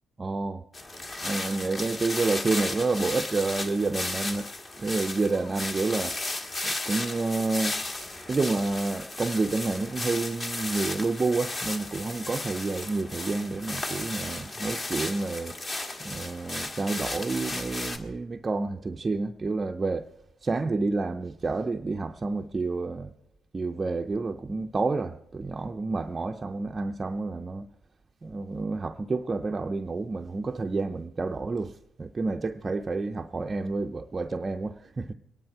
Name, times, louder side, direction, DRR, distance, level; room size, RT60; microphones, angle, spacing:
voice 1, 0.2-0.6 1.2-4.5 4.8-6.3 6.6-7.8 8.3-15.6 16.0-20.1 20.4-23.1 23.5-27.7 28.2-31.7 32.0-35.1, right 3 dB, 30° right, 0.5 m, -29 dB
Walking in leaves, 0.7-18.0, left 2 dB, 30° left, 1.6 m, -34 dB
24.0 x 10.5 x 4.5 m
cardioid pair, 90°, 0 cm